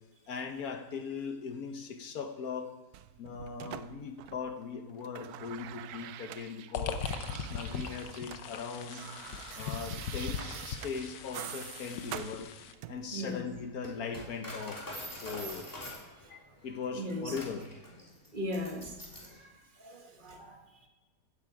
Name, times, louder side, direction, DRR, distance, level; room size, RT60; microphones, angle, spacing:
voice 1, 0.3-2.7 3.2-7.0 7.5-9.0 9.6-12.5 12.9-15.7 16.3-17.7, left 5 dB, 65° left, 1.5 m, -39 dB
sound 1, 2.9-4.6 4.9-8.4 8.7-13.1 14.1-14.3, right 12 dB, 75° right, 1.0 m, -45 dB
sound 2, 6.7-12.7, left 6 dB, 90° left, 1.5 m, -39 dB
Coin (dropping), 8.9-19.4, left 1 dB, 10° left, 2.9 m, -47 dB
voice 2, 13.1-13.5 16.9-17.4 18.3-19.0 19.3-20.9, equal, 30° right, 1.7 m, -39 dB
15.5 x 8.8 x 4.9 m
omnidirectional pair, 1.8 m